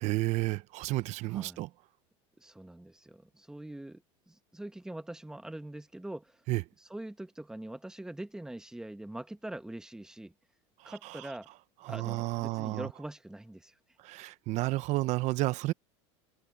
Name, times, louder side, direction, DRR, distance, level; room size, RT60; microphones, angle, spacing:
voice 1, 0.0-1.7 6.5-6.6 11.9-12.9 14.0-15.7, right 19 dB, 50° right, 0.7 m, -31 dB
voice 2, 1.3-1.6 2.4-6.4 6.8-10.3 10.8-11.5 11.9-13.8, right 1 dB, 5° right, 1.2 m, -43 dB
supercardioid pair, 140°, 15 cm